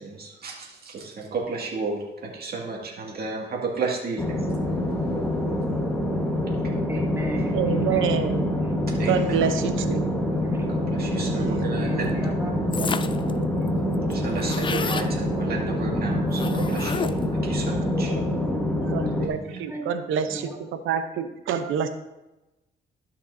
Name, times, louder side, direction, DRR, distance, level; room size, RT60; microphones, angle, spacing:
voice 1, 0.0-4.4 6.5-6.6 9.0-9.4 9.8-9.9 10.7-12.3 14.1-18.1 19.2-19.6 20.3-20.4, right 4 dB, 50° right, -2 dB, 2.2 m, -33 dB
sound 1, 4.2-19.3, left 1 dB, 5° left, 1.4 m, -26 dB
voice 2, 6.9-8.9 10.2-10.7 11.7-13.5 18.5-19.2 19.7-19.9 20.3-20.6, right 1 dB, 15° right, -2 dB, 2.3 m, -37 dB
voice 3, 7.5-8.5 9.1-10.1 11.2-11.7 18.1-18.2 18.8-20.5 20.8-21.9, right 7 dB, 80° right, 8 dB, 0.8 m, -27 dB
sound 2, 12.7-13.3 13.7-13.8 13.9-15.1 16.3-17.4, left 6 dB, 25° left, 0.4 m, -31 dB
12.5 x 5.8 x 2.7 m, 1.0 s
cardioid pair, 90°, 20 cm